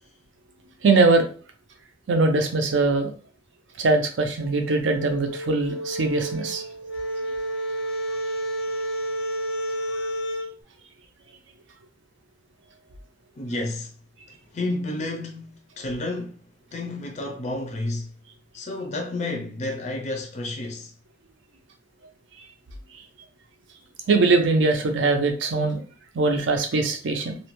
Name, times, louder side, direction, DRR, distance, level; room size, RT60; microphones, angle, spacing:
voice 1, 0.8-1.3 2.1-3.1 3.8-6.6 24.1-25.8 26.1-27.4, right 3 dB, 75° right, 0.5 m, -21 dB
sound 1, 4.4-10.5, right 1 dB, 85° left, 0.5 m, -30 dB
voice 2, 13.4-13.9 14.3-16.4 16.7-18.1 18.5-20.9, left 2 dB, 35° left, 0.4 m, -31 dB
2.5 x 2.1 x 3.0 m
head